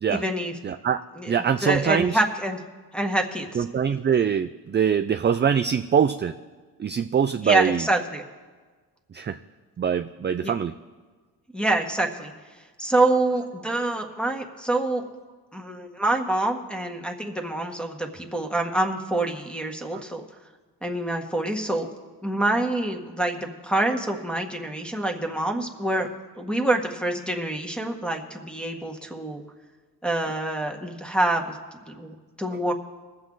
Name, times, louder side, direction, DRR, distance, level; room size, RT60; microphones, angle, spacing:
voice 1, 0.1-0.6 1.1-2.6 2.9-3.6 7.4-8.2 10.4-10.5 11.5-12.3 12.8-15.0 15.5-20.2 20.8-21.9 22.2-26.1 26.3-29.4 30.0-31.6 31.9-32.7, right 2 dB, ahead, 4 dB, 1.6 m, -26 dB
voice 2, 0.6-2.2 3.6-6.4 6.8-7.8 9.1-9.4 9.8-10.7 19.9-20.0, right 7 dB, 25° right, 9 dB, 0.4 m, -23 dB
20.5 x 7.6 x 3.9 m, 1.4 s
cardioid pair, 65°, 41 cm